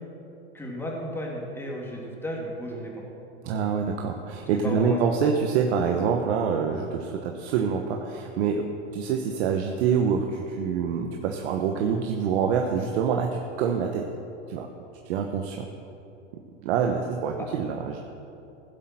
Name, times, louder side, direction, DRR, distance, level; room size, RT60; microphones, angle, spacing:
voice 1, 0.5-3.0 3.5-3.6 4.3-5.0 17.4-17.5, equal, 5° left, -2 dB, 2.5 m, -34 dB
voice 2, 3.4-14.1 14.5-14.7 15.0-15.7 16.6-18.0, right 6 dB, 60° right, 3 dB, 1.2 m, -26 dB
16.0 x 7.8 x 5.9 m, 2.7 s
hypercardioid pair, 120°, 36 cm